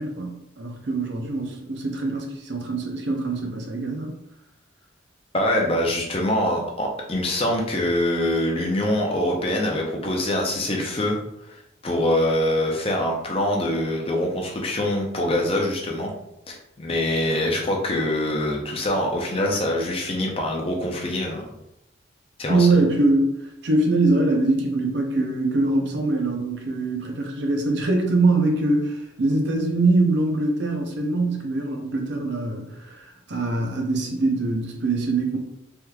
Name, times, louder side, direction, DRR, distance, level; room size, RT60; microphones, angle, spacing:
voice 1, 0.0-4.1 22.5-23.3 23.6-35.4, right 2 dB, 60° right, 2 dB, 0.6 m, -23 dB
voice 2, 5.3-11.2 11.4-11.6 11.8-16.1 16.5-21.4 22.4-22.7, left 1 dB, 30° left, 0 dB, 0.5 m, -24 dB
3.4 x 3.0 x 2.3 m, 0.83 s
head